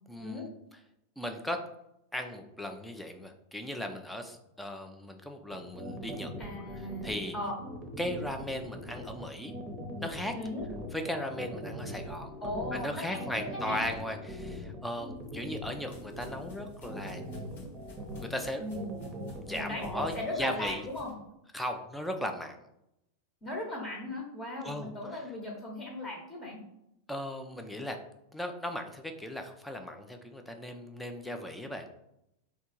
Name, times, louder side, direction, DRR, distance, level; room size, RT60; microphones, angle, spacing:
voice 1, 0.1-0.5 1.2-1.6 2.1-6.3 7.0-7.3 8.0-9.5 10.0-10.3 10.9-12.3 12.7-17.6 18.2-18.6 19.3-20.8 21.5-22.7 24.6-24.9 27.1-28.0 28.3-31.9, left 1 dB, 5° left, 5 dB, 0.5 m, -37 dB
sound 1, 5.5-20.2, equal, 20° right, 0.9 m, -41 dB
voice 2, 6.4-7.1 7.3-7.6 10.3-10.6 12.4-13.8 18.6-18.8 19.5-21.1 23.4-26.6, left 1 dB, 20° left, -1 dB, 1.1 m, -37 dB
sound 2, 15.0-21.1, left 2 dB, 60° left, 1.5 m, -53 dB
3.4 x 2.8 x 4.4 m, 0.82 s
figure-of-eight pair, 90°, 0 cm